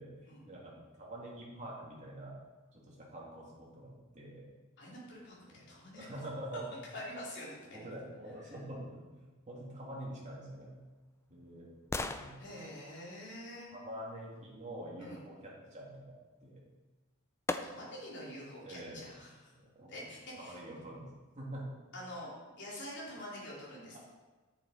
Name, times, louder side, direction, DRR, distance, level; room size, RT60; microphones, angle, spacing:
voice 1, 0.5-2.4 2.7-4.5 5.4-5.6 5.9-6.6 7.7-9.2 9.5-10.7 11.3-11.7 12.1-12.4 13.7-16.6 18.6-19.1 19.7-20.0 20.4-21.0 21.3-21.7, right 1 dB, 35° right, -4 dB, 2.7 m, -46 dB
voice 2, 4.8-6.1 6.9-7.9 12.4-13.7 15.0-15.2 17.6-19.5 19.9-20.6 21.9-22.3 22.6-24.0, left 1 dB, 55° left, -6 dB, 3.4 m, -46 dB
sound 1, 10.5-14.5 16.6-16.7 17.5-18.2 18.7-18.8, left 2 dB, 15° left, 0.4 m, -43 dB
9.6 x 7.3 x 5.0 m, 1.3 s
head